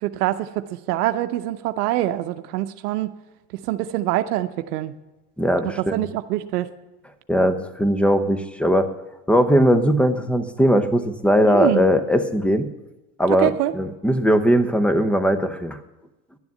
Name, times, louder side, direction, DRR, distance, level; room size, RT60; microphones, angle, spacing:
voice 1, 0.0-3.1 3.7-5.0 5.8-6.7 11.5-11.8 13.3-13.7, right 14 dB, 80° right, 10 dB, 0.8 m, -24 dB
voice 2, 5.4-6.1 7.3-8.9 9.3-12.7 13.2-15.8, equal, 5° left, 10 dB, 0.8 m, -19 dB
11.0 x 7.0 x 9.3 m, 1.1 s
supercardioid pair, 110°, 45 cm